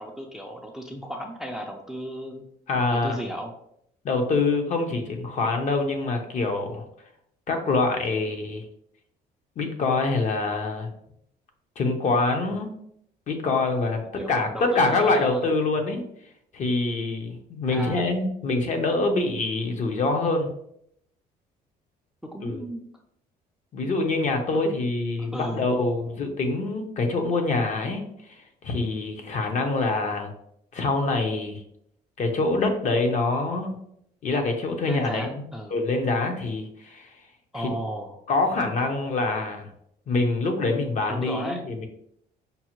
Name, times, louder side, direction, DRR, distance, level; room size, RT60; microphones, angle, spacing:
voice 1, 0.0-2.4 2.9-3.5 14.2-15.4 17.7-18.1 22.2-22.9 24.5-24.8 25.2-25.7 34.9-35.7 37.5-38.2 41.1-41.6, equal, ahead, 2 dB, 0.4 m, -34 dB
voice 2, 2.7-3.2 4.0-6.8 7.5-8.6 9.6-10.9 11.8-12.7 13.3-16.0 16.5-20.5 22.4-22.6 23.7-30.3 30.7-31.6 32.2-33.8 34.2-35.3 35.7-37.2 37.5-37.7 38.3-39.7 40.1-41.9, left 3 dB, 45° left, 4 dB, 0.7 m, -25 dB
5.3 x 2.1 x 2.9 m, 0.73 s
cardioid pair, 110°, 17 cm